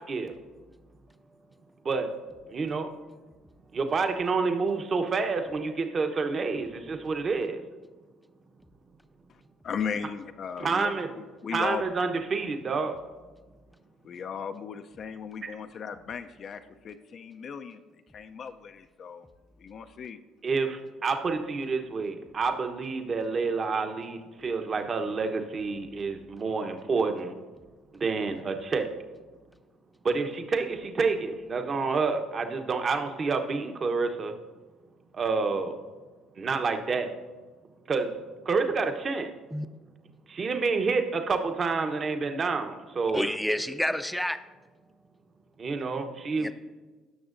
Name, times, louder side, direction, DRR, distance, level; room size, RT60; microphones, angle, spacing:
voice 1, 0.1-0.4 1.8-2.1 2.5-2.9 3.7-7.6 10.6-11.1 11.5-12.9 20.4-27.3 28.0-28.9 30.0-34.3 35.1-35.8 36.4-37.1 37.9-38.1 38.4-39.3 40.3-43.3 45.6-46.5, right 4 dB, 40° right, 6 dB, 0.9 m, -28 dB
voice 2, 9.3-11.8 14.0-17.8 18.1-19.3 19.6-20.2, left 6 dB, 50° left, 8 dB, 0.4 m, -37 dB
voice 3, 43.1-44.4 46.4-46.5, left 1 dB, 5° left, 11 dB, 0.5 m, -29 dB
17.5 x 6.3 x 2.6 m, 1.3 s
supercardioid pair, 80°, 0 cm